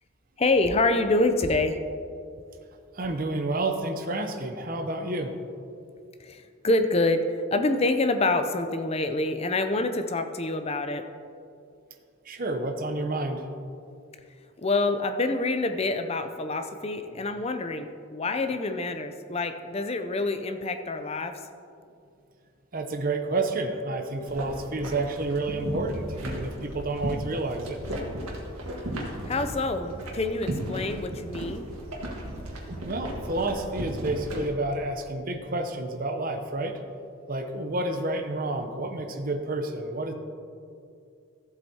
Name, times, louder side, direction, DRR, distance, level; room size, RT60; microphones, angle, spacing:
voice 1, 0.4-1.8 6.2-11.0 14.6-21.3 29.3-31.6, left 2 dB, 30° left, 8 dB, 0.4 m, -26 dB
voice 2, 2.9-5.3 12.3-13.5 22.7-27.8 32.9-36.8 37.3-40.1, right 2 dB, 40° right, 5 dB, 0.7 m, -30 dB
sound 1, 24.3-34.5, right 1 dB, 85° right, 1.7 m, -35 dB
14.5 x 7.9 x 2.8 m, 2.5 s
head